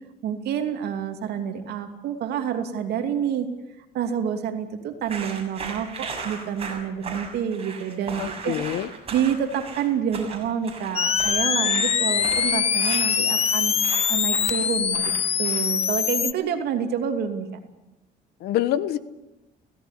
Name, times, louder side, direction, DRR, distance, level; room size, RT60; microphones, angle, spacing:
voice 1, 0.2-3.5 3.9-8.6 9.1-13.7 14.1-15.0 15.4-17.5, right 8 dB, 75° right, 6 dB, 2.8 m, -28 dB
sound 1, 5.0-15.8, right 4 dB, 35° right, 6.7 m, -37 dB
voice 2, 8.2-8.9 18.4-19.0, left 12 dB, 75° left, 14 dB, 1.2 m, -26 dB
sound 2, 11.0-16.3, left 7 dB, 40° left, 0.9 m, -23 dB
17.0 x 16.5 x 9.8 m, 0.99 s
cardioid pair, 110°, 17 cm